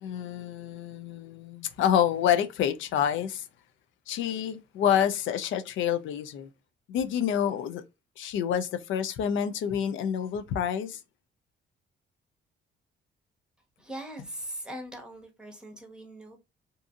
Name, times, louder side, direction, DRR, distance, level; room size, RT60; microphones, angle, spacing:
voice 1, 0.0-3.4 4.1-6.5 6.9-7.8 8.2-11.0, left 9 dB, 80° left, 0.4 m, -28 dB
voice 2, 13.8-16.4, right 1 dB, 5° right, 1.0 m, -41 dB
2.6 x 2.5 x 2.4 m
cardioid pair, 90°, 20 cm